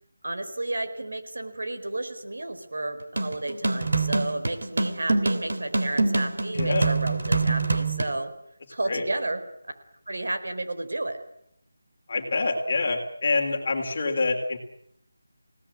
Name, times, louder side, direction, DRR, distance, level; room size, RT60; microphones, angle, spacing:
voice 1, 0.2-8.3 8.7-9.4 10.1-11.2, right 2 dB, 70° right, 7 dB, 4.5 m, -32 dB
sound 1, 3.2-8.1, right 3 dB, 55° right, 2.9 m, -25 dB
voice 2, 6.5-6.9 8.9-9.0 12.1-14.6, left 3 dB, 30° left, 3 dB, 3.5 m, -26 dB
28.0 x 18.0 x 8.7 m, 0.76 s
figure-of-eight pair, 180°, 0 cm